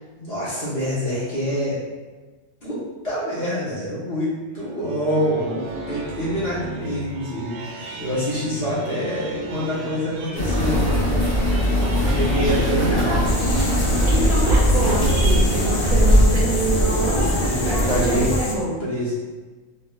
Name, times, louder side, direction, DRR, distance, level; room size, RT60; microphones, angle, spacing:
voice 1, 0.2-1.8 2.6-11.3 11.9-13.4 17.4-18.4 18.8-19.1, equal, 45° left, -9 dB, 1.4 m, -26 dB
sound 1, 4.5-15.4, right 2 dB, 85° right, 1.1 m, -36 dB
sound 2, 10.3-18.4, equal, 10° left, 0.7 m, -20 dB
voice 2, 12.3-12.7 14.1-17.3 17.6-18.8, right 2 dB, 65° right, -4 dB, 1.0 m, -26 dB
sound 3, 13.2-18.6, left 3 dB, 70° left, 0.5 m, -31 dB
4.1 x 2.7 x 2.4 m, 1.3 s
omnidirectional pair, 1.6 m